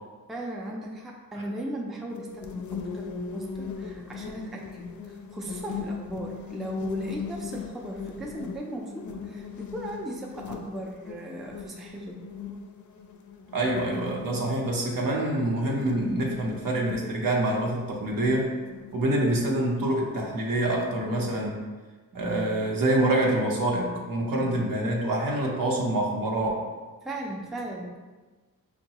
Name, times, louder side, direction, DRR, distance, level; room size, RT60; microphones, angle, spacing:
voice 1, 0.3-12.2 24.3-24.6 27.0-28.0, right 1 dB, ahead, -2 dB, 0.3 m, -37 dB
sound 1, 2.1-21.5, left 5 dB, 60° left, 0.4 m, -40 dB
voice 2, 13.5-18.5 18.9-21.6 22.1-26.6, right 1 dB, 70° right, -2 dB, 0.9 m, -26 dB
5.5 x 2.2 x 2.8 m, 1.3 s
wide cardioid pair, 130°, 35 cm